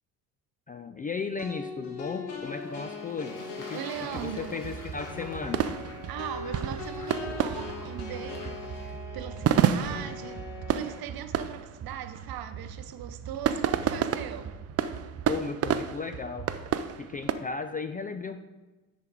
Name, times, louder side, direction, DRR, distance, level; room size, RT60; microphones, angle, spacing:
voice 1, 0.7-3.8 4.1-5.6 15.3-16.5 17.0-18.4, left 4 dB, 20° left, 8 dB, 0.3 m, -35 dB
sound 1, 1.4-11.0, left 4 dB, 60° left, 1.4 m, -40 dB
Fowl / Bird / Water, 2.4-8.9, left 2 dB, 45° left, 2.0 m, -49 dB
voice 2, 3.7-4.6 6.1-14.5, right 10 dB, 50° right, 9 dB, 0.9 m, -39 dB
sound 2, 3.9-17.3, right 9 dB, 35° right, 0.5 m, -31 dB
9.3 x 3.9 x 4.7 m, 1.2 s
hypercardioid pair, 65°, 45 cm